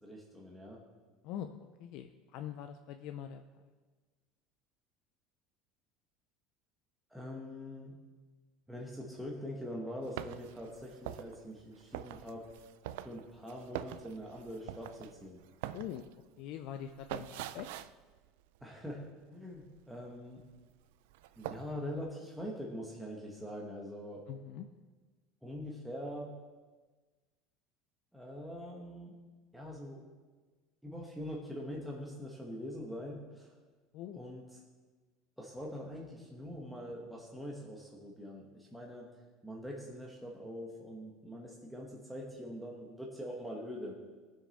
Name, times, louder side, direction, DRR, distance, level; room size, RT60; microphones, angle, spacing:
voice 1, 0.0-0.8 7.1-7.9 8.7-12.5 13.0-15.4 18.6-20.4 21.4-24.2 25.4-26.4 28.1-29.2 29.5-30.0 30.8-33.6 34.1-34.6 35.4-39.1 39.4-44.0, equal, ahead, -3 dB, 1.0 m, -43 dB
voice 2, 1.2-3.4 15.7-16.1 16.4-17.7 24.3-24.7 33.9-34.2, left 10 dB, 55° left, 7 dB, 0.5 m, -43 dB
sound 1, 10.0-19.2 19.5-20.6 20.9-21.7, right 12 dB, 85° right, 0.4 m, -45 dB
18.0 x 6.4 x 4.0 m, 1.3 s
cardioid pair, 165°, 0 cm